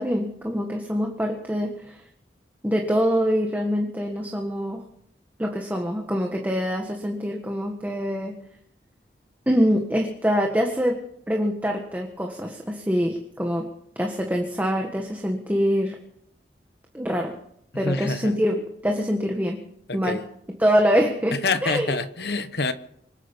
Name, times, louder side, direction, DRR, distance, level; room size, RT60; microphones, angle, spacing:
voice 1, 0.0-2.0 2.6-4.8 5.4-8.3 9.5-11.0 11.3-13.7 13.9-16.0 16.9-17.3 17.7-18.5 18.8-19.6 19.9-20.2 20.6-22.0, equal, 10° right, 1.5 m, -24 dB
voice 2, 17.8-18.4 19.9-20.2 21.4-22.7, left 3 dB, 65° left, 1.0 m, -26 dB
25.5 x 9.0 x 5.5 m
head